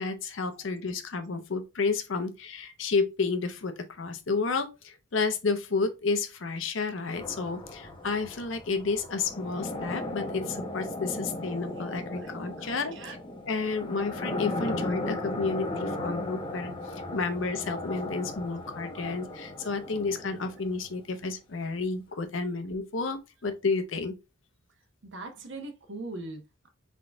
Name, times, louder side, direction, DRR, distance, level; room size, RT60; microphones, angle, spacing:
voice 1, 0.0-13.0 13.5-24.2, left 4 dB, 65° left, 0.7 m, -31 dB
sound 1, 7.1-21.0, left 1 dB, 25° left, 0.9 m, -36 dB
voice 2, 11.7-13.2 14.6-14.7 25.0-26.7, right 2 dB, 60° right, 1.0 m, -42 dB
3.8 x 3.7 x 3.4 m
head